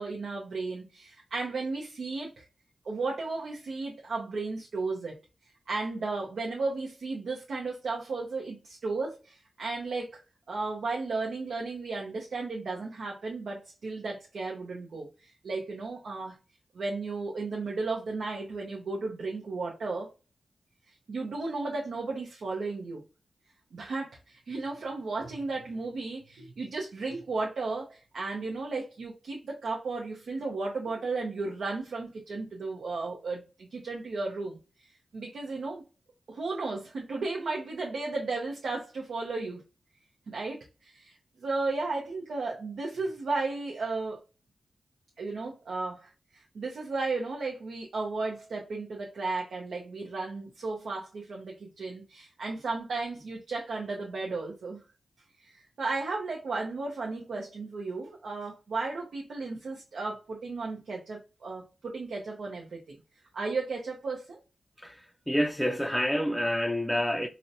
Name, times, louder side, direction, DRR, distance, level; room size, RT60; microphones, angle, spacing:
voice 1, 0.0-2.5 2.8-5.2 5.7-10.2 10.5-16.4 16.7-20.1 20.9-23.0 23.7-34.6 35.1-35.8 36.3-39.6 40.3-44.2 45.2-54.8 55.4-63.0 63.3-64.4, right 3 dB, 80° right, 0.6 m, -34 dB
voice 2, 64.8-67.3, equal, 5° left, 0.4 m, -28 dB
3.9 x 2.1 x 2.6 m
cardioid pair, 55°, 0 cm